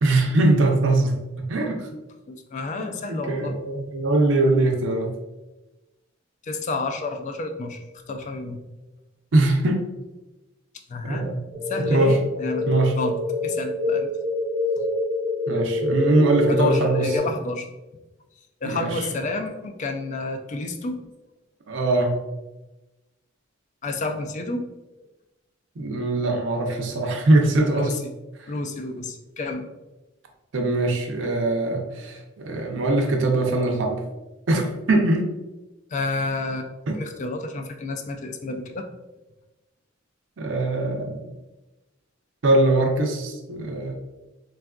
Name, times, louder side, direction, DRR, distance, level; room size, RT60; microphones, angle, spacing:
voice 1, 0.0-1.2 1.5-1.9 2.8-5.1 9.3-9.9 11.0-11.4 11.8-12.2 12.7-12.9 15.5-17.1 18.6-19.1 21.7-22.2 25.8-27.9 30.5-34.0 34.5-35.3 36.9-37.0 40.4-41.3 42.4-43.9, right 2 dB, 75° right, 2 dB, 0.5 m, -22 dB
voice 2, 2.3-3.6 6.4-8.6 10.9-11.3 11.7-12.7 12.9-14.1 16.5-17.7 18.6-21.0 23.8-24.6 27.7-27.9 28.5-29.7 35.9-38.9, left 3 dB, 40° left, 5 dB, 0.3 m, -30 dB
sound 1, 11.5-17.2, left 1 dB, 10° right, 0.6 m, -25 dB
3.5 x 2.3 x 2.2 m, 1.0 s
head